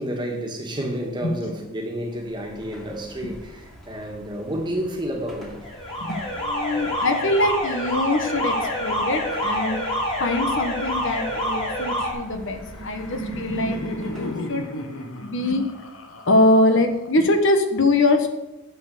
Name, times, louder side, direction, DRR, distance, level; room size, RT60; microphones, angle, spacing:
voice 1, 0.0-5.6, equal, 20° right, 1.8 m, -30 dB
Car passing by / Traffic noise roadway noise / Engine, 2.1-14.7, left 1 dB, ahead, 2.0 m, -45 dB
Alarm, 5.6-12.1, equal, 30° left, 3.1 m, -27 dB
voice 2, 6.0-9.8 10.2-14.6 15.2-15.6 16.3-18.3, left 2 dB, 60° left, 1.3 m, -23 dB
Laughter, 12.2-17.2, equal, 80° left, 1.5 m, -33 dB
9.4 x 7.0 x 6.9 m
head